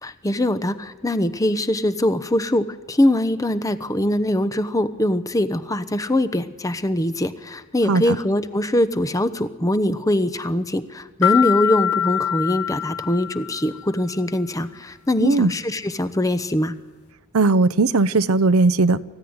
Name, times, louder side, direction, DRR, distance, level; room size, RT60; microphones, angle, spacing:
voice 1, 0.0-16.7, left 1 dB, 15° left, 12 dB, 0.9 m, -22 dB
sound 1, 11.2-13.9, left 10 dB, 85° left, 0.9 m, -23 dB
voice 2, 15.2-15.5 17.3-19.0, right 3 dB, 80° right, 16 dB, 0.7 m, -18 dB
25.0 x 15.5 x 9.6 m, 1.3 s
head